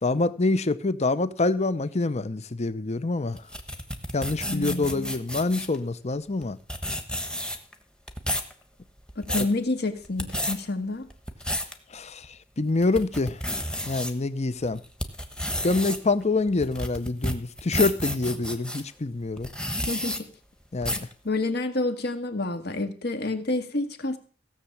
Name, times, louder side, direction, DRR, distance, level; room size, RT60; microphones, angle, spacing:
voice 1, 0.0-3.4 4.1-6.6 11.9-12.3 12.6-13.4 13.8-14.8 15.6-19.5 20.7-21.1, left 3 dB, 35° left, 15 dB, 0.8 m, -26 dB
sound 1, 3.4-5.8 6.4-6.5 6.7-7.7 8.1-8.5 9.0-9.5 10.0-10.5 11.1-11.7 12.2-12.3 12.8-14.1 14.6-18.8 19.4-20.2 20.8-21.1, left 1 dB, 5° left, 1.3 m, -31 dB
voice 2, 4.5-5.1 9.2-11.1 19.9-20.3 21.2-24.2, left 2 dB, 55° left, 8 dB, 1.8 m, -29 dB
16.0 x 7.1 x 7.2 m, 0.40 s
head